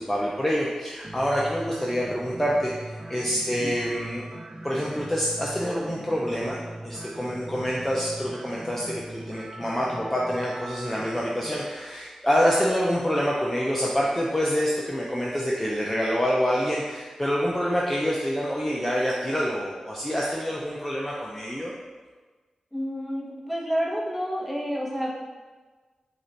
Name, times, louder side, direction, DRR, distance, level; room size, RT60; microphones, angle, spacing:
voice 1, 0.0-2.7 3.1-4.2 4.6-6.6 6.8-21.7, equal, 10° left, -4 dB, 0.7 m, -26 dB
sound 1, 1.0-11.6, right 1 dB, 35° right, 0.5 m, -41 dB
voice 2, 22.7-25.2, equal, 5° right, -3 dB, 1.2 m, -29 dB
4.8 x 2.6 x 4.2 m, 1.4 s
cardioid pair, 40°, 2 cm